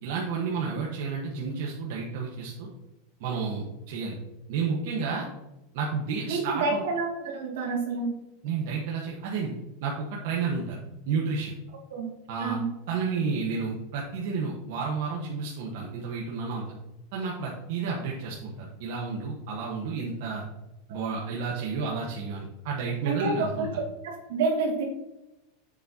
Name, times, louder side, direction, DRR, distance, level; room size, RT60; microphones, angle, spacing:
voice 1, 0.0-2.7 3.2-4.1 4.5-5.3 5.7-6.8 8.4-9.5 9.8-10.8 11.1-11.5 12.3-12.6 12.9-16.7 17.1-20.4 20.9-23.7, right 5 dB, 55° right, -2 dB, 1.2 m, -31 dB
voice 2, 6.3-8.1 11.9-12.1 12.4-12.7 20.9-21.0 23.1-23.7 24.0-24.8, right 3 dB, 70° right, 0 dB, 2.3 m, -28 dB
7.4 x 7.4 x 2.8 m, 0.93 s
supercardioid pair, 170°, 0 cm